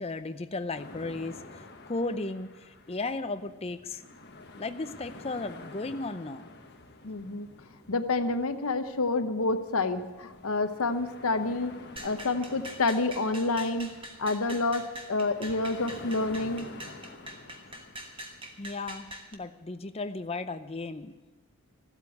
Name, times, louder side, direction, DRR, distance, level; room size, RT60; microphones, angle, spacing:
voice 1, 0.0-4.0 4.5-6.5 18.6-21.3, left 3 dB, 25° left, 10 dB, 0.6 m, -35 dB
sound 1, 0.7-19.0, left 2 dB, 50° left, 1.4 m, -49 dB
voice 2, 7.0-7.5 7.9-11.7 12.0-13.9 14.2-16.7, left 3 dB, 70° left, 9 dB, 0.9 m, -28 dB
sound 2, 12.0-19.3, right 1 dB, 25° right, 1.2 m, -44 dB
14.5 x 8.2 x 8.4 m, 1.2 s
head